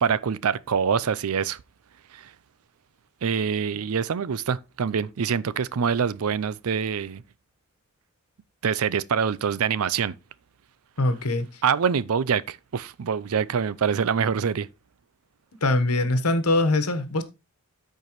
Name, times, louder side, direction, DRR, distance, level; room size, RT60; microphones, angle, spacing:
voice 1, 0.0-1.6 2.1-2.3 3.2-7.2 8.6-10.1 11.6-14.7, right 6 dB, 75° right, 0.5 m, -25 dB
voice 2, 11.0-11.6 15.6-17.2, left 2 dB, 85° left, 1.2 m, -23 dB
13.5 x 4.6 x 3.0 m
head